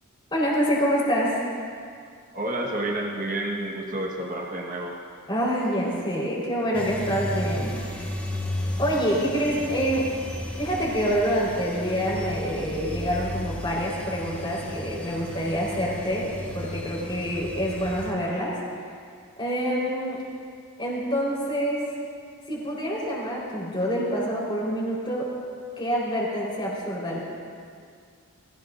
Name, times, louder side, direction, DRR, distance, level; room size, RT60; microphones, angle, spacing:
voice 1, 0.3-1.4 5.3-8.1 8.8-10.1 10.6-16.3 16.5-18.5 19.4-20.2 20.8-21.8 22.5-25.3 25.8-27.2, equal, 20° left, -5 dB, 4.0 m, -26 dB
voice 2, 2.3-4.9, right 1 dB, 40° right, -1 dB, 1.3 m, -29 dB
sound 1, 6.7-18.1, left 1 dB, 5° left, 1.3 m, -34 dB
20.5 x 16.0 x 2.5 m, 2.2 s
head